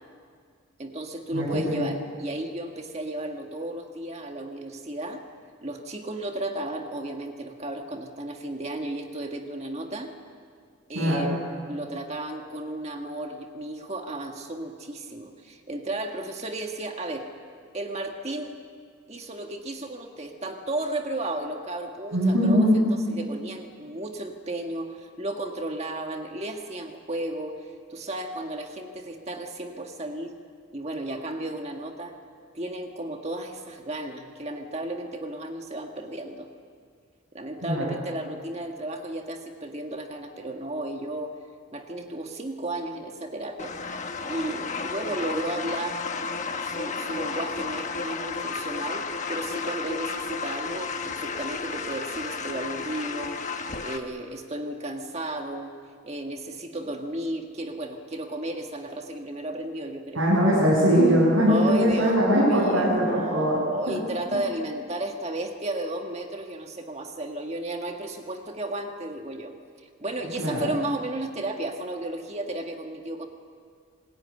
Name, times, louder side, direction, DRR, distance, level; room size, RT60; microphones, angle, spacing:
voice 1, 0.8-5.2 5.6-10.1 10.9-11.4 11.7-17.3 17.7-18.5 19.1-27.5 27.9-30.3 30.7-32.2 32.5-36.5 37.3-41.3 41.7-43.7 44.2-46.0 46.6-55.7 56.0-60.3 61.5-69.5 69.8-73.3, right 1 dB, 30° right, 3 dB, 1.8 m, -34 dB
voice 2, 1.3-1.9 10.9-11.4 22.1-22.8 37.6-37.9 60.1-63.6 63.9-64.0 70.4-70.7, equal, 75° right, -6 dB, 7.6 m, -21 dB
sound 1, 43.6-54.0, left 4 dB, 35° left, 1.3 m, -32 dB
26.0 x 21.0 x 9.8 m, 2.1 s
head